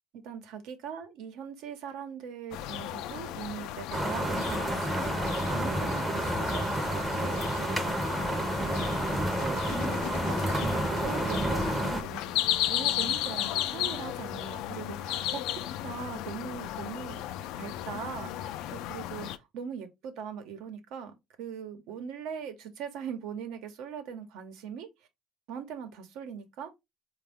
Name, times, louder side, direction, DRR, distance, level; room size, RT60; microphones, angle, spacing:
voice 1, 0.1-9.0 9.4-17.2 17.6-24.9 25.5-26.7, right 7 dB, 80° right, 0.9 m, -41 dB
sound 1, 2.5-19.4, left 12 dB, 80° left, 0.3 m, -35 dB
sound 2, 3.9-12.0, right 1 dB, 10° right, 0.6 m, -30 dB
4.3 x 2.3 x 3.5 m
cardioid pair, 145°, 0 cm